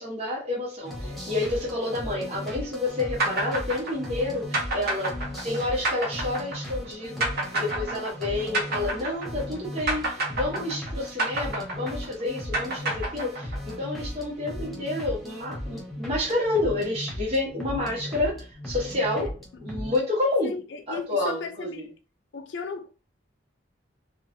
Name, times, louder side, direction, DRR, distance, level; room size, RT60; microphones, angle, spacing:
voice 1, 0.0-5.2 5.4-19.3 19.6-20.6 20.9-21.8, left 2 dB, 30° right, 1.1 m, -29 dB
sound 1, 0.8-20.0, left 1 dB, ahead, 0.6 m, -37 dB
sound 2, 3.2-9.6 9.9-13.7, right 2 dB, 55° right, 0.9 m, -29 dB
voice 2, 20.4-21.9 22.3-22.9, left 4 dB, 65° left, 0.5 m, -36 dB
3.1 x 2.1 x 2.6 m
head